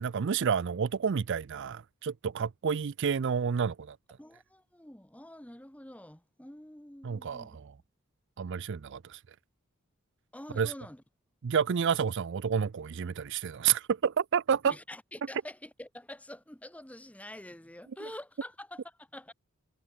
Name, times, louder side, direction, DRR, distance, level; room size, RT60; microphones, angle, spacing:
voice 1, 0.0-4.0 7.0-7.7 8.4-9.2 10.5-10.7 11.4-14.7, right 7 dB, 55° right, 0.4 m, -29 dB
voice 2, 4.2-7.6 10.3-11.0 14.6-19.3, left 1 dB, 5° left, 1.2 m, -47 dB
head